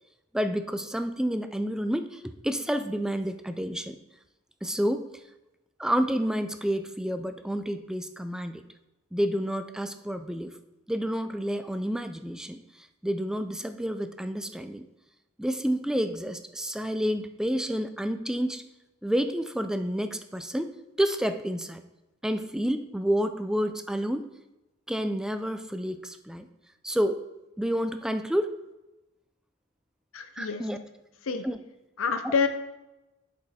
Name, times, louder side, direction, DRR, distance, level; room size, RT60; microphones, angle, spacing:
voice 1, 0.3-4.0 4.6-5.0 5.8-8.6 9.1-10.6 10.9-14.8 15.4-18.6 19.0-20.7 21.0-21.8 22.2-24.3 24.9-26.5 26.8-27.2 27.6-28.5 30.4-30.8 31.4-31.6 32.2-32.3, equal, 5° right, 9 dB, 0.3 m, -29 dB
voice 2, 30.1-30.6 31.3-31.4 32.0-32.5, left 5 dB, 80° left, 9 dB, 0.7 m, -27 dB
7.1 x 5.1 x 4.2 m, 1.0 s
head